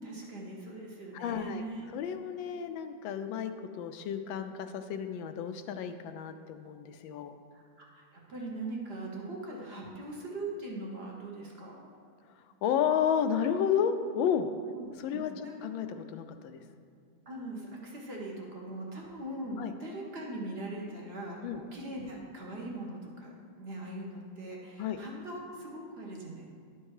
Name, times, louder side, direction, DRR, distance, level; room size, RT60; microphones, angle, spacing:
voice 1, 0.0-1.8 7.5-11.9 14.7-15.6 17.3-26.5, right 2 dB, 40° right, -2 dB, 1.0 m, -41 dB
voice 2, 1.1-1.6 1.9-7.4 12.6-14.5 15.0-16.6 19.6-19.7 21.4-21.6 24.8-25.0, left 8 dB, 80° left, 9 dB, 1.3 m, -32 dB
11.5 x 4.4 x 4.8 m, 2.2 s
omnidirectional pair, 2.1 m